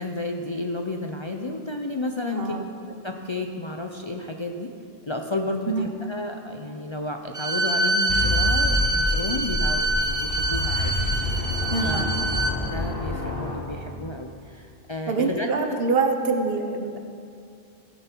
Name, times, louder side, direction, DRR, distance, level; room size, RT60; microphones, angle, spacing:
voice 1, 0.0-2.6 3.0-4.7 5.1-10.9 11.2-11.5 11.8-12.1 12.6-15.8, left 2 dB, 35° left, 3 dB, 0.5 m, -32 dB
voice 2, 2.3-2.7 5.7-6.0 11.7-12.1 15.1-17.0, right 4 dB, 65° right, 5 dB, 1.2 m, -25 dB
Bowed string instrument, 7.3-12.6, right 2 dB, 20° right, 0.6 m, -25 dB
sound 1, 8.1-14.3, left 2 dB, 60° left, 1.4 m, -28 dB
15.5 x 8.9 x 4.5 m, 2.5 s
omnidirectional pair, 1.1 m